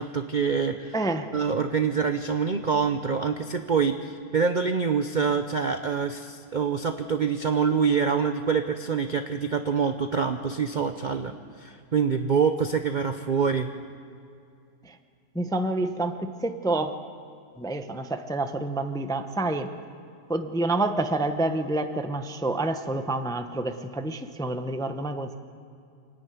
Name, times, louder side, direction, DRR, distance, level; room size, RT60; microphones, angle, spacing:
voice 1, 0.0-0.9 1.3-11.3 11.6-13.7, right 6 dB, 75° right, 7 dB, 0.4 m, -25 dB
voice 2, 0.9-1.3 14.8-15.0 15.3-17.0 17.6-19.7 20.3-25.4, right 2 dB, 5° left, 7 dB, 0.4 m, -28 dB
26.0 x 10.5 x 9.4 m, 2.5 s
omnidirectional pair, 1.8 m